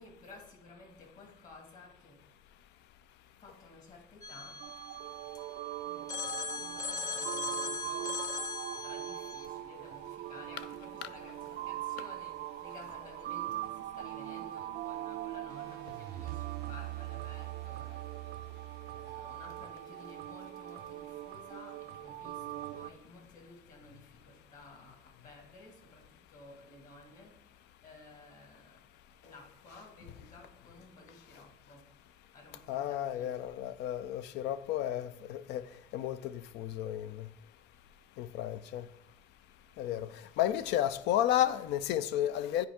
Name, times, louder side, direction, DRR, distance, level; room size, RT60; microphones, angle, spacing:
voice 1, 0.0-2.5 3.4-4.7 5.3-5.5 5.8-8.3 8.8-18.5 18.8-31.9 32.3-33.6 37.7-37.9 39.8-39.9 40.2-40.4, left 2 dB, 50° left, 2.1 m, -55 dB
Telephone, 4.2-5.6 6.1-9.5, left 5 dB, 20° left, 0.6 m, -39 dB
sound 1, 4.6-22.9, right 14 dB, 75° right, 0.4 m, -41 dB
voice 2, 32.7-35.7 35.9-37.3 38.2-38.9 39.8-42.7, left 12 dB, 85° left, 0.4 m, -32 dB
10.0 x 4.5 x 3.6 m
cardioid pair, 110°, 17 cm